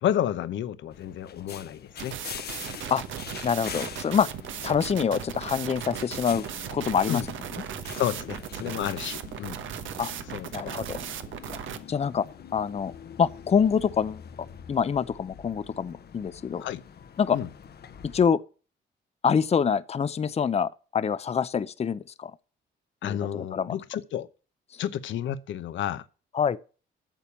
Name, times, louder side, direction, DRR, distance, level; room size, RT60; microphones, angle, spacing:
voice 1, 0.0-2.2 7.1-7.3 8.0-9.6 10.3-10.7 16.6-16.8 17.3-17.5 23.0-24.3 24.8-26.1, left 11 dB, 75° left, 0.9 m, -31 dB
sound 1, 0.9-18.2, left 8 dB, 55° left, 1.0 m, -44 dB
sound 2, 2.0-11.8, right 10 dB, 75° right, 1.1 m, -37 dB
voice 2, 3.4-4.3 4.6-6.4 6.7-7.2 10.0-10.1 10.5-11.0 11.9-12.2 12.5-12.9 13.2-14.2 14.7-16.7 17.2-17.4 18.0-18.4 19.2-22.3 23.0-23.7 26.3-26.6, left 7 dB, 30° left, 0.6 m, -25 dB
9.1 x 6.9 x 7.2 m
cardioid pair, 90°, 20 cm